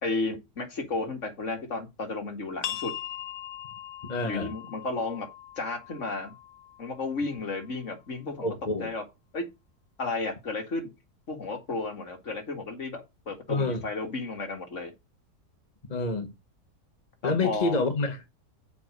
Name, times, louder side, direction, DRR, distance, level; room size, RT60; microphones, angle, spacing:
voice 1, 0.0-3.0 4.2-5.3 5.6-6.3 6.8-8.5 8.8-9.0 9.3-9.5 10.0-10.9 11.3-14.9 17.2-17.8, left 3 dB, 50° left, 2.3 m, -33 dB
sound 1, 2.6-8.0, left 11 dB, 70° left, 1.0 m, -41 dB
voice 2, 4.1-4.5 8.4-8.9 13.5-13.8 15.9-16.3 17.2-18.3, left 3 dB, 30° left, 1.2 m, -28 dB
6.9 x 4.8 x 6.5 m
omnidirectional pair, 1.7 m